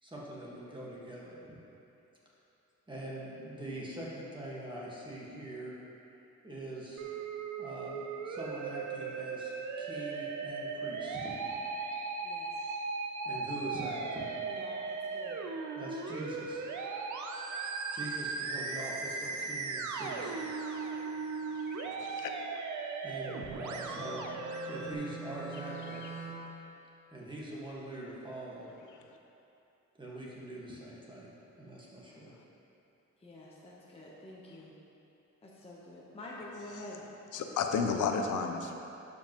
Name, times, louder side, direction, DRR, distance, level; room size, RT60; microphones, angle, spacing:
voice 1, 0.0-1.6 2.9-5.7 6.4-7.1 7.6-11.3 13.2-14.3 15.7-16.6 17.9-20.4 23.0-24.2 24.7-26.0 27.1-28.7 30.0-32.3, right 1 dB, 15° right, -6 dB, 1.5 m, -43 dB
Musical instrument, 7.0-24.9, right 4 dB, 75° right, 0.6 m, -37 dB
voice 2, 12.2-12.7 14.5-15.4 33.2-34.7 35.4-37.0, left 1 dB, 20° left, -6 dB, 0.9 m, -48 dB
voice 3, 21.4-22.3 26.0-26.1 29.1-29.2 34.5-34.6 36.8-36.9 37.3-38.9, left 5 dB, 85° left, 4 dB, 0.7 m, -33 dB
Bowed string instrument, 23.2-26.6, right 3 dB, 45° left, 1.5 m, -45 dB
11.5 x 5.3 x 3.0 m, 2.8 s
cardioid pair, 110°, 30 cm